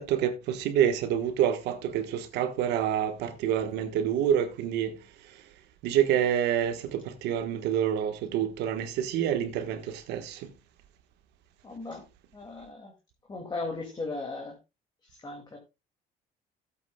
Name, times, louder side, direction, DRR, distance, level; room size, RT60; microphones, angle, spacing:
voice 1, 0.0-4.9 5.8-9.8 10.1-10.4, right 9 dB, 85° right, 1.4 m, -27 dB
voice 2, 11.6-12.0 12.3-12.9 13.3-14.6 15.2-15.6, left 3 dB, 25° left, 2.4 m, -36 dB
16.5 x 8.4 x 2.3 m
cardioid pair, 110°, 17 cm